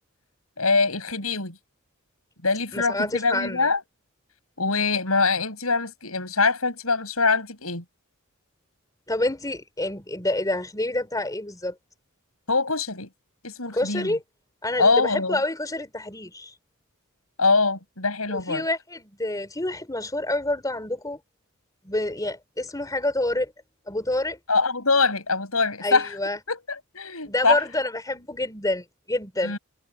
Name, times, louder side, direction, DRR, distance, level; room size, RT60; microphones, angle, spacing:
voice 1, 0.6-1.6 2.4-3.8 4.6-7.8 12.5-13.1 13.4-14.1 14.8-15.4 17.4-18.6 24.5-26.1 26.5-27.6 29.4-29.6, left 4 dB, 80° left, 7.9 m, -23 dB
voice 2, 2.7-3.7 9.1-11.7 13.7-14.2 14.6-16.5 18.3-21.2 21.8-23.5 23.9-24.4 25.8-26.4 27.2-29.6, left 1 dB, 15° left, 3.9 m, -28 dB
head